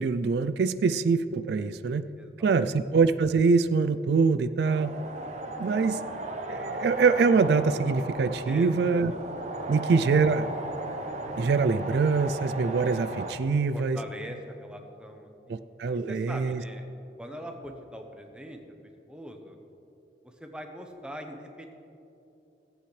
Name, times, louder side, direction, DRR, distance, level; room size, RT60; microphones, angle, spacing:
voice 1, 0.0-2.1 2.4-4.9 5.6-6.0 6.5-9.1 9.7-10.5 11.4-14.0 15.5-16.6, right 4 dB, 60° right, 12 dB, 0.3 m, -24 dB
voice 2, 2.2-2.5 8.4-8.9 13.7-15.6 16.1-16.8 17.2-19.6 20.2-21.7, equal, 5° right, 3 dB, 0.8 m, -42 dB
sound 1, 4.6-13.3, right 1 dB, 40° right, 0.9 m, -36 dB
18.0 x 8.5 x 3.3 m, 2.8 s
head